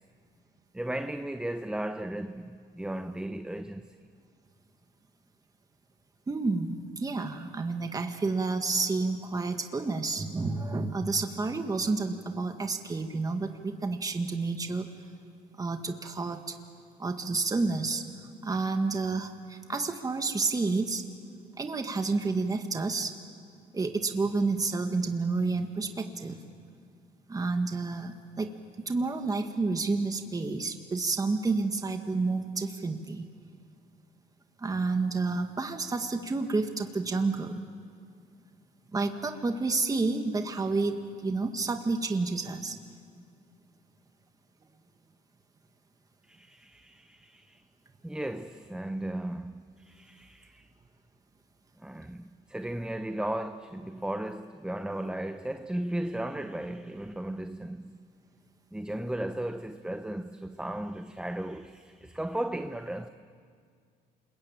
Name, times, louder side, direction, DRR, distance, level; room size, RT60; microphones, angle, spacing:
voice 1, 0.7-3.9 46.2-47.6 48.0-50.7 51.7-57.9 58.7-63.1, right 1 dB, 5° right, 0.8 m, -35 dB
voice 2, 6.3-14.9 15.6-16.6 17.0-18.0 18.4-21.0 21.6-23.1 23.7-26.4 27.3-28.5 28.9-33.3 34.6-37.6 38.9-42.8, right 3 dB, 20° right, 1.8 m, -30 dB
29.5 x 21.5 x 9.0 m
cardioid pair, 110°, 17 cm